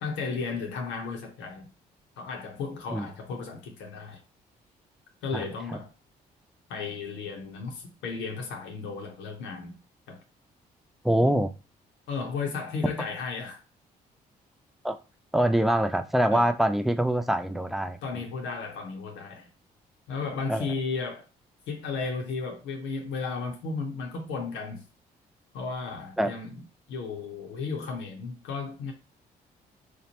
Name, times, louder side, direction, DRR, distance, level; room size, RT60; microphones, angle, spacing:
voice 1, 0.0-1.7 2.2-4.2 5.2-5.9 6.7-9.7 10.1-10.2 11.2-11.3 12.1-13.6 16.3-16.5 18.0-19.5 20.1-21.2 21.7-24.8 25.5-26.6 26.9-28.9, left 4 dB, 70° left, 0.7 m, -34 dB
voice 2, 11.0-11.5 14.8-15.0 15.3-18.0 20.5-20.7 26.2-26.3, right 1 dB, ahead, 0.4 m, -24 dB
2.9 x 2.0 x 2.9 m
hypercardioid pair, 45°, 20 cm